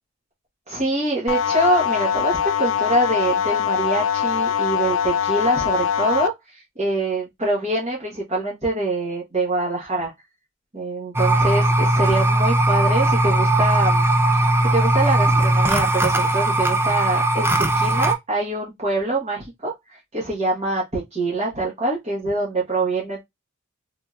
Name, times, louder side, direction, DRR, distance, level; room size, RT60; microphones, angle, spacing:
voice 1, 0.7-10.1 10.7-14.1 14.3-23.2, right 2 dB, 35° right, 1.2 m, -24 dB
sound 1, 1.3-6.3, left 8 dB, 75° left, 0.3 m, -22 dB
sound 2, 11.1-18.1, right 1 dB, 10° right, 0.5 m, -19 dB
3.6 x 2.7 x 2.3 m
head